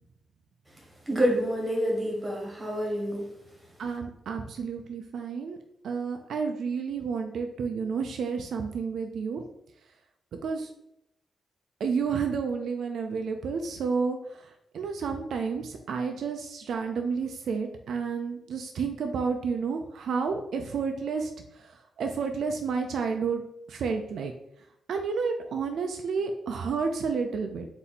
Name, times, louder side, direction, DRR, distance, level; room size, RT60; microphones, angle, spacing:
voice 1, 1.1-3.2, equal, 10° right, -2 dB, 1.2 m, -27 dB
voice 2, 3.8-5.6 5.8-9.4 10.4-10.7 11.8-23.4 23.7-24.3 24.9-27.7, right 5 dB, 70° right, 5 dB, 0.4 m, -31 dB
4.1 x 2.7 x 4.1 m, 0.80 s
wide cardioid pair, 170°, 0 cm